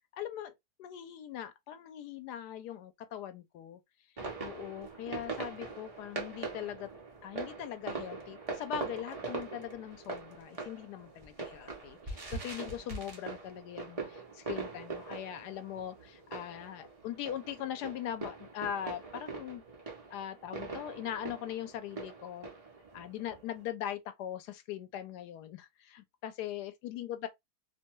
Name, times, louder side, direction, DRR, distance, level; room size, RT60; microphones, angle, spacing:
voice 1, 0.2-0.5 0.8-3.8 4.4-6.9 7.2-19.6 20.1-22.5 22.9-27.3, left 10 dB, 80° left, 1.1 m, -41 dB
sound 1, 4.2-23.6, right 3 dB, 40° right, 0.5 m, -42 dB
2.8 x 2.2 x 2.9 m
omnidirectional pair, 1.8 m